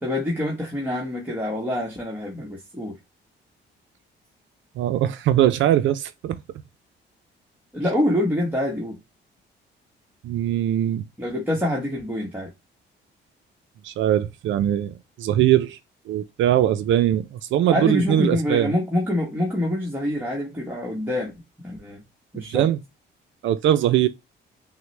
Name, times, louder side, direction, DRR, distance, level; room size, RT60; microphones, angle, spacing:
voice 1, 0.0-2.9 7.7-9.0 11.2-12.5 17.7-21.3 21.6-22.0 22.3-22.7, left 1 dB, 10° right, 1.1 m, -25 dB
voice 2, 4.8-6.4 10.2-11.1 13.8-15.8 16.1-18.7 22.5-22.8 23.4-24.1, right 12 dB, 75° right, 0.4 m, -21 dB
5.7 x 2.1 x 3.1 m
cardioid pair, 90°, 20 cm